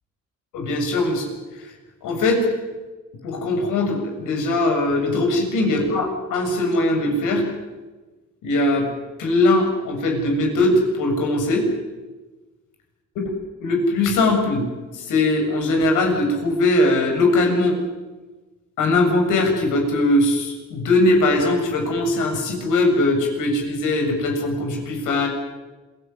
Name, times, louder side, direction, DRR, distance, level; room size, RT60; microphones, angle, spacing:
voice 1, 0.5-1.3 1.6-1.7 2.0-2.5 3.2-7.5 8.4-8.9 9.2-11.7 13.2-13.3 13.6-17.8 18.8-25.3, left 2 dB, 90° left, 3 dB, 7.1 m, -20 dB
27.0 x 17.5 x 9.4 m, 1.2 s
cardioid pair, 90°, 30 cm